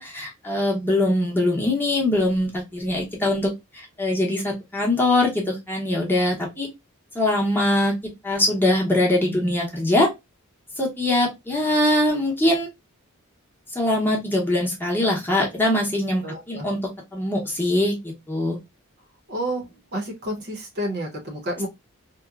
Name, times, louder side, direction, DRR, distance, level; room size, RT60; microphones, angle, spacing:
voice 1, 0.0-6.7 7.1-7.9 8.2-10.1 10.8-12.7 13.7-16.8 17.1-18.6, left 1 dB, 10° left, 0.8 m, -22 dB
voice 2, 16.2-16.7 19.3-21.7, right 1 dB, 50° right, 0.8 m, -30 dB
2.9 x 2.1 x 2.3 m
head